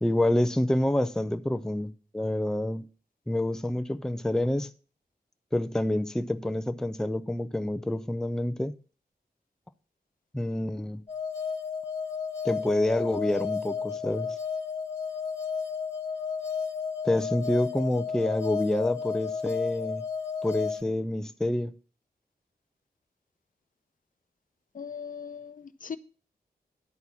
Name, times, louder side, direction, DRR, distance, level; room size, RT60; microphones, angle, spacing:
voice 1, 0.0-2.9 3.3-4.7 5.5-8.7 10.3-11.0 12.4-14.3 17.0-20.0 20.4-21.7, left 1 dB, 5° left, 0.5 m, -27 dB
sound 1, 11.1-20.8, left 6 dB, 35° left, 1.7 m, -33 dB
voice 2, 24.7-26.0, left 6 dB, 55° left, 0.6 m, -39 dB
11.0 x 4.4 x 6.9 m
wide cardioid pair, 90°, 17 cm